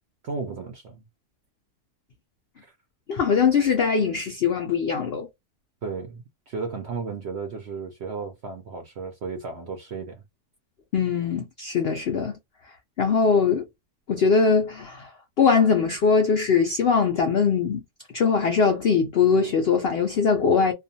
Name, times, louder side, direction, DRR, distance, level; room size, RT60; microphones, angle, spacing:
voice 1, 0.2-1.0 2.6-2.8 5.8-10.2, right 4 dB, 70° right, 0.6 m, -34 dB
voice 2, 3.1-5.3 10.9-12.4 13.0-13.7 14.1-15.1 15.4-17.8 18.1-20.7, left 5 dB, 85° left, 0.5 m, -21 dB
2.4 x 2.4 x 2.6 m
omnidirectional pair, 1.7 m